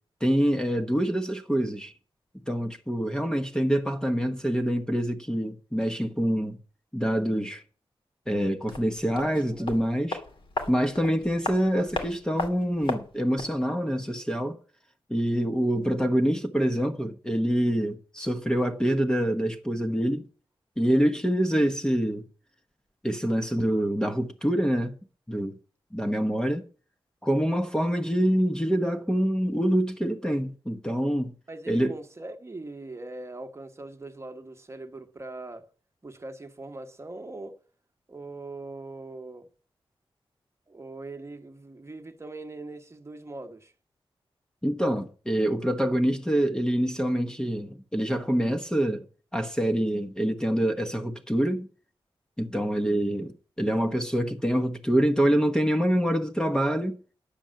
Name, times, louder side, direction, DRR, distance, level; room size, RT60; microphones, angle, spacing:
voice 1, 0.2-1.9 2.5-6.6 6.9-7.6 8.3-10.2 10.7-14.6 15.1-20.2 20.8-22.2 23.0-25.0 25.3-25.6 25.9-26.6 27.2-31.3 31.7-32.0 44.6-49.0 49.3-51.7 52.4-57.0, equal, 10° left, 1.1 m, -26 dB
sound 1, 8.6-13.6 13.9-14.0, left 2 dB, 60° left, 2.4 m, -36 dB
voice 2, 9.2-9.7 31.5-35.6 36.0-37.6 38.1-39.5 40.7-43.7, right 2 dB, 30° right, 1.3 m, -41 dB
10.5 x 7.0 x 7.7 m
wide cardioid pair, 115°, 10 cm